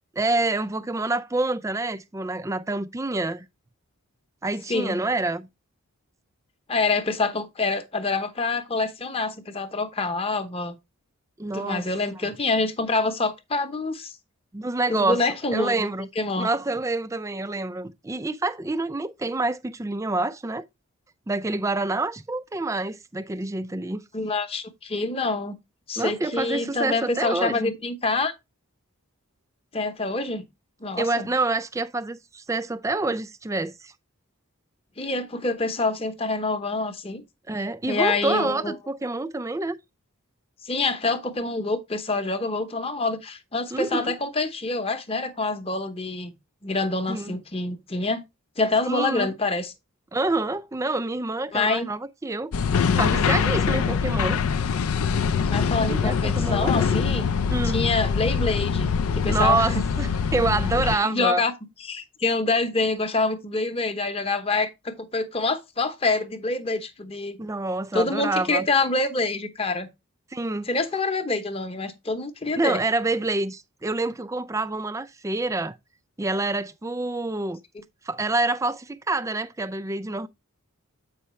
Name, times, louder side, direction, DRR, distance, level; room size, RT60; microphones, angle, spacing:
voice 1, 0.2-3.5 4.4-5.5 11.4-11.9 14.5-15.2 15.5-16.1 16.4-20.6 21.3-24.0 26.0-27.7 31.0-33.9 37.5-39.8 43.7-44.1 47.1-47.4 48.8-49.3 50.1-52.5 53.0-54.4 55.8-57.0 57.5-57.8 59.3-61.4 67.4-68.7 70.3-70.7 72.6-75.8 76.2-77.6 78.0-80.3, right 2 dB, 15° right, 0.4 m, -27 dB
voice 2, 4.7-5.0 6.7-10.8 11.5-14.1 14.9-15.9 16.2-16.5 24.1-25.6 25.9-28.3 29.7-30.5 30.8-31.3 35.0-37.2 37.9-38.7 40.6-46.3 46.6-48.2 48.6-49.7 51.5-51.9 55.5-57.3 57.6-59.8 60.8-61.5 61.8-67.4 67.9-69.9 70.7-72.8, left 3 dB, 25° left, 0.9 m, -26 dB
sound 1, 52.5-61.0, left 6 dB, 75° left, 0.4 m, -24 dB
8.2 x 5.6 x 3.1 m
head